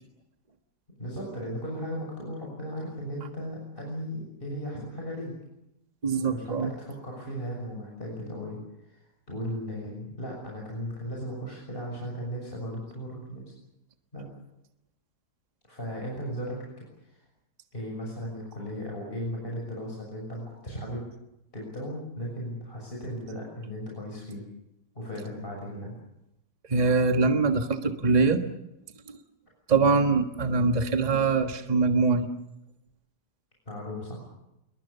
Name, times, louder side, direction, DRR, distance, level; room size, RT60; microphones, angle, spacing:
voice 1, 1.0-5.3 6.3-8.6 8.9-9.0 9.3-13.4 14.1-14.2 15.7-17.2 17.7-21.1 21.5-24.4 25.0-26.0 33.7-34.3, equal, 30° left, -2 dB, 6.9 m, -36 dB
voice 2, 6.0-6.7 26.7-28.4 29.1-29.2 29.7-32.3, right 4 dB, 25° right, 6 dB, 1.5 m, -23 dB
27.0 x 22.5 x 6.9 m, 0.86 s
omnidirectional pair, 1.8 m